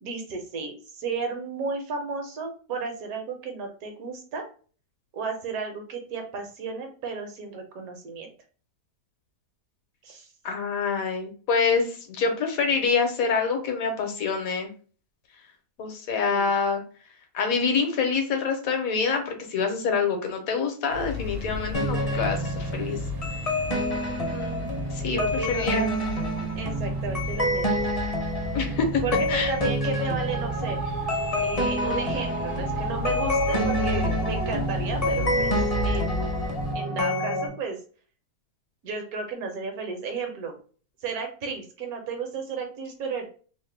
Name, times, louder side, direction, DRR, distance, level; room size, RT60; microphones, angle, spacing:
voice 1, 0.0-4.4 5.1-8.3 10.0-10.3 16.3-16.5 25.0-25.7 26.6-27.9 29.0-30.9 31.4-35.6 35.8-36.3 36.7-37.8 38.8-40.6 41.0-43.3, right 4 dB, 70° right, 4 dB, 1.2 m, -33 dB
voice 2, 10.4-14.7 15.8-16.8 17.3-23.0 24.3-25.2 25.5-25.9 28.5-29.0 29.3-29.5, left 5 dB, 65° left, 4 dB, 1.1 m, -26 dB
sound 1, 20.9-36.8, left 3 dB, 50° right, 0.7 m, -34 dB
sound 2, 21.7-37.5, equal, 35° left, 0.6 m, -28 dB
3.0 x 2.1 x 3.2 m, 0.39 s
omnidirectional pair, 1.7 m